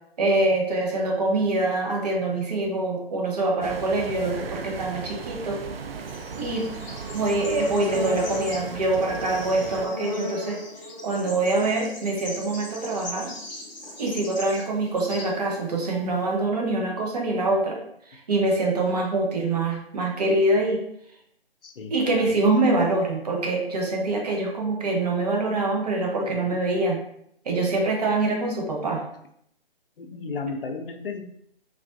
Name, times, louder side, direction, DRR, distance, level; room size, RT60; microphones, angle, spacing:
voice 1, 0.2-5.6 6.4-6.7 7.1-10.6 11.0-13.3 14.0-17.8 18.1-20.8 21.9-27.0 27.4-29.0, right 2 dB, 40° right, 0 dB, 0.8 m, -24 dB
sound 1, 3.6-9.9, right 6 dB, 75° right, 0.4 m, -37 dB
Bird / Insect, 5.7-16.3, left 2 dB, 20° left, 0.6 m, -37 dB
voice 2, 21.6-22.3 26.3-26.7 30.0-31.2, left 4 dB, 65° left, 5 dB, 0.6 m, -35 dB
3.3 x 2.5 x 2.5 m, 0.73 s
figure-of-eight pair, 145°, 30 cm